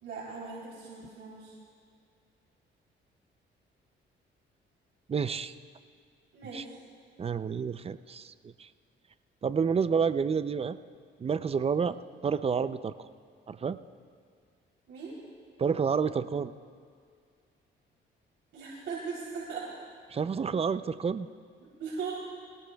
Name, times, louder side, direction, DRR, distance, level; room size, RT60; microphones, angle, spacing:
voice 1, 0.0-1.5 6.3-6.8 14.9-15.2 18.5-19.7 21.8-22.1, right 5 dB, 70° right, -7 dB, 3.3 m, -39 dB
voice 2, 5.1-5.5 6.5-6.6 7.2-8.7 9.4-10.8 11.2-12.0 12.2-13.1 13.5-13.8 15.6-16.5 20.1-21.3, right 6 dB, 30° right, 13 dB, 0.5 m, -29 dB
22.0 x 18.5 x 2.3 m, 2.1 s
cardioid pair, 90°, 20 cm